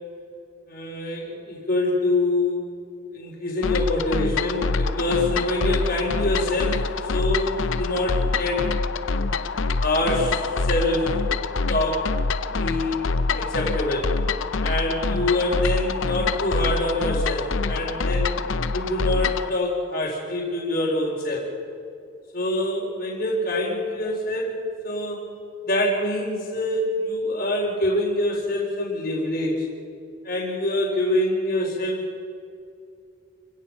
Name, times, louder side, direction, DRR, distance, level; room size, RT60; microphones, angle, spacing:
voice 1, 0.7-2.6 3.1-6.8 7.1-8.7 9.6-11.4 11.7-12.1 12.5-13.0 13.3-14.1 14.6-18.3 18.7-21.5 22.3-24.6 24.8-25.3 25.6-29.7 30.2-32.2, left 1 dB, 50° left, -7 dB, 4.4 m, -25 dB
sound 1, 3.6-19.5, left 3 dB, 90° left, 0.7 m, -25 dB
29.5 x 16.5 x 5.8 m, 2.5 s
head